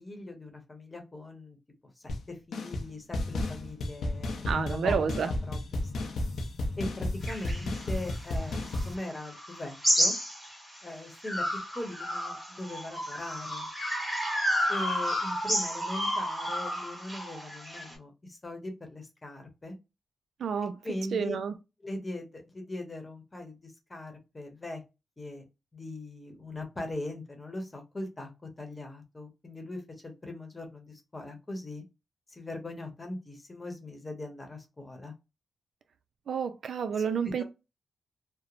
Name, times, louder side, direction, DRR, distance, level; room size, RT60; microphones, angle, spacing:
voice 1, 0.0-1.6 2.0-6.1 6.8-10.2 10.8-11.4 11.7-13.7 14.7-19.8 20.8-21.4 21.8-24.8 25.2-25.4 25.7-31.8 32.3-35.1 37.2-37.4, left 1 dB, 25° left, 0.9 m, -40 dB
sound 1, 2.1-2.2 2.5-2.9 3.1-8.9, left 1 dB, 80° left, 0.5 m, -33 dB
voice 2, 4.4-5.3 20.4-20.8 21.1-21.5 36.3-37.4, right 6 dB, 80° right, 0.3 m, -30 dB
sound 2, 7.2-10.8 11.2-17.9, equal, 10° right, 1.3 m, -31 dB
3.0 x 2.0 x 2.4 m
wide cardioid pair, 105°, 0 cm